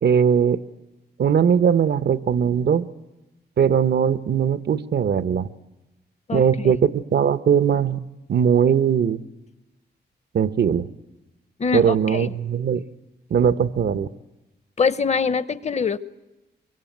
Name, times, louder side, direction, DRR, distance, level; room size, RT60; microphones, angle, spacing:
voice 1, 0.0-0.6 1.2-2.9 3.6-5.5 6.3-8.0 8.3-9.2 10.3-10.9 11.7-12.8 13.3-14.1, right 7 dB, 70° right, 15 dB, 0.9 m, -20 dB
voice 2, 6.3-6.7 11.6-12.3 14.8-16.0, left 5 dB, 40° left, 17 dB, 0.8 m, -24 dB
24.5 x 23.5 x 9.1 m, 0.98 s
wide cardioid pair, 145°, 18 cm